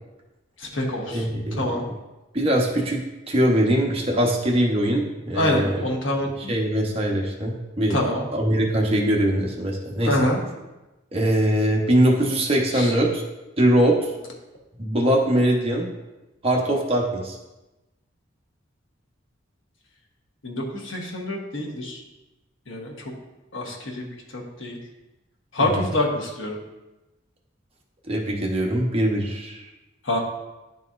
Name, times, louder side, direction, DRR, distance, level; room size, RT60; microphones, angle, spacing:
voice 1, 0.6-1.8 5.3-6.5 7.9-8.3 10.0-10.4 12.7-12.9 20.4-22.0 22.7-23.1 23.5-24.1 24.3-24.8 25.5-26.6 30.0-30.2, left 1 dB, 85° left, -1 dB, 1.2 m, -26 dB
voice 2, 1.1-1.8 2.3-5.8 6.5-10.1 11.1-13.2 13.6-14.1 14.8-15.9 16.4-17.4 25.6-25.9 28.1-29.6, right 1 dB, 30° right, -1 dB, 0.9 m, -22 dB
11.0 x 4.1 x 2.5 m, 1.0 s
head